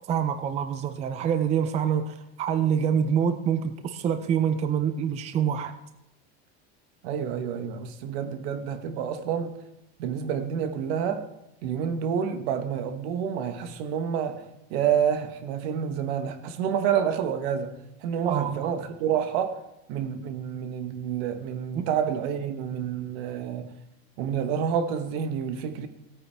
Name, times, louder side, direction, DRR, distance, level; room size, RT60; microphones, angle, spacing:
voice 1, 0.1-5.7 18.2-18.7 21.8-21.9, right 8 dB, 20° right, 10 dB, 0.4 m, -26 dB
voice 2, 7.0-9.6 10.0-11.3 11.6-19.6 19.9-23.7 24.2-25.9, right 8 dB, 70° right, 9 dB, 1.2 m, -28 dB
16.5 x 8.9 x 3.4 m, 0.88 s
supercardioid pair, 150°, 32 cm